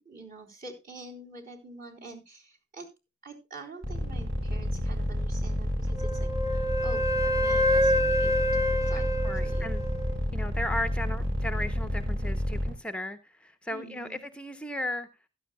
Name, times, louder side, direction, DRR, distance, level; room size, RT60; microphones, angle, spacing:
voice 1, 0.0-2.9 3.2-9.1 9.3-9.7 13.7-14.2, right 2 dB, 40° right, 1 dB, 3.8 m, -46 dB
sound 1, 3.8-12.7, left 1 dB, 65° right, 7.2 m, -29 dB
Wind instrument woodwind instrument, 6.0-10.2, left 1 dB, 15° right, 1.3 m, -27 dB
voice 2, 8.9-9.8 10.3-15.1, left 1 dB, 5° left, 9 dB, 0.7 m, -35 dB
15.5 x 12.5 x 2.2 m, 0.27 s
head